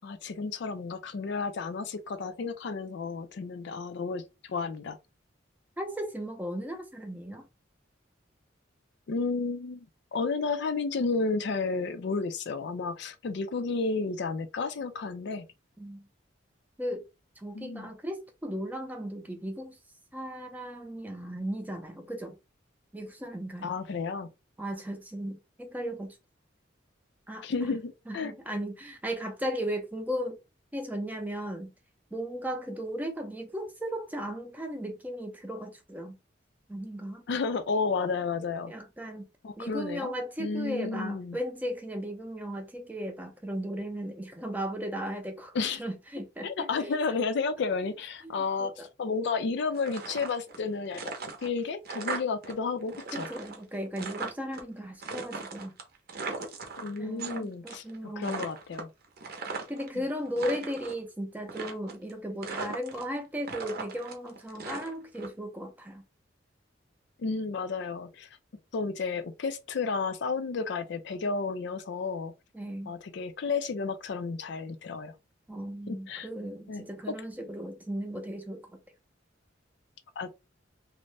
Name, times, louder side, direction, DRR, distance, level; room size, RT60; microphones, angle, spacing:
voice 1, 0.0-5.0 9.1-9.9 10.1-15.5 17.5-17.9 23.6-24.3 27.4-28.3 37.3-38.7 39.4-40.1 40.4-41.4 45.5-45.8 46.4-53.3 56.8-57.8 58.2-58.9 59.9-60.1 67.2-68.3 68.7-72.3 72.9-75.1 75.9-76.3 76.7-77.2 80.2-80.3, left 4 dB, 65° left, 0.4 m, -32 dB
voice 2, 5.8-7.5 15.8-16.0 16.8-17.0 17.4-19.8 20.1-22.3 22.9-23.7 24.6-26.1 27.3-27.8 28.1-30.4 30.7-31.7 32.1-36.2 36.7-37.2 38.7-39.3 39.6-45.5 45.8-47.0 48.6-48.9 53.1-55.7 57.0-58.3 59.7-66.0 72.5-72.9 75.5-78.6, equal, 10° right, 0.5 m, -36 dB
sound 1, 49.7-50.6 50.9-52.5 52.8-54.6 55.0-57.4 57.7-58.0 58.2-59.9 60.3-61.0 61.5-62.1 62.4-63.2 63.4-65.3, right 4 dB, 55° right, 0.7 m, -38 dB
2.5 x 2.0 x 3.2 m
head